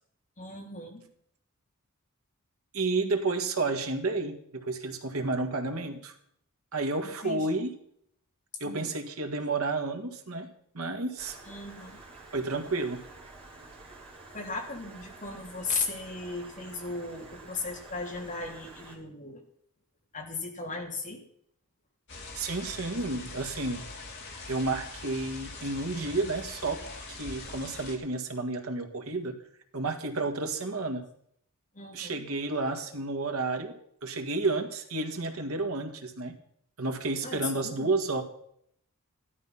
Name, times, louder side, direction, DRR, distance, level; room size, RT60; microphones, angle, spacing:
voice 1, 0.4-1.0 7.0-7.5 8.6-8.9 11.5-12.0 14.3-19.4 20.1-21.2 31.7-32.2 37.2-37.9, left 3 dB, 35° left, 0 dB, 3.1 m, -37 dB
voice 2, 2.7-6.1 6.7-7.7 8.6-11.4 12.3-13.0 22.3-23.8 24.5-26.8 27.1-29.4 29.7-31.1 31.9-33.7 34.0-36.4 36.8-38.2, right 3 dB, 80° right, 6 dB, 1.9 m, -31 dB
Stream, 11.2-19.0, right 2 dB, 25° right, 4.1 m, -49 dB
sound 1, 22.1-28.0, left 3 dB, 50° left, 2.8 m, -43 dB
15.0 x 12.0 x 5.8 m, 0.68 s
head